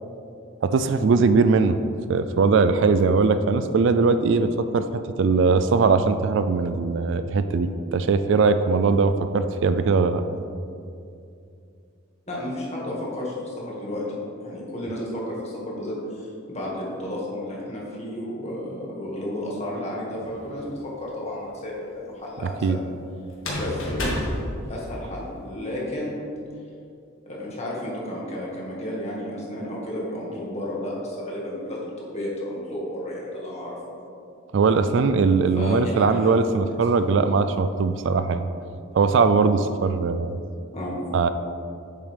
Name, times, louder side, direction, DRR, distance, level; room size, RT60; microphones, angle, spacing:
voice 1, 0.6-1.8 2.1-4.9 5.2-10.2 22.6-22.8 34.5-38.5 38.9-40.4 41.1-41.3, right 4 dB, 60° right, 10 dB, 0.3 m, -20 dB
voice 2, 12.3-14.0 14.4-20.7 21.0-22.8 23.5-24.3 24.7-26.2 27.3-33.8 35.6-36.6 36.9-37.0 40.7-41.0, left 1 dB, 30° left, -4 dB, 1.8 m, -32 dB
sound 1, 20.2-20.9 23.3-25.3, left 1 dB, 75° left, 1.7 m, -30 dB
8.4 x 7.2 x 3.4 m, 2.5 s
head